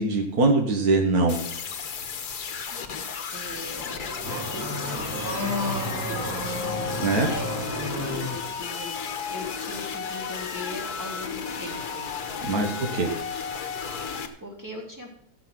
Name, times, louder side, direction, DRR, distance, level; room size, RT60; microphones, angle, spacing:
voice 1, 0.0-1.4 7.0-7.3 12.4-13.1, right 3 dB, 70° right, 2 dB, 2.0 m, -22 dB
sound 1, 1.3-14.3, left 6 dB, 90° left, 1.7 m, -34 dB
voice 2, 2.4-3.1 3.3-4.0 4.5-6.5 6.9-12.1 12.7-13.0 14.0-15.1, left 1 dB, 10° right, -2 dB, 3.3 m, -40 dB
Car / Accelerating revving vroom, 3.5-8.5, left 1 dB, 10° left, 5.9 m, -31 dB
16.5 x 7.0 x 6.0 m, 0.69 s
omnidirectional pair, 1.6 m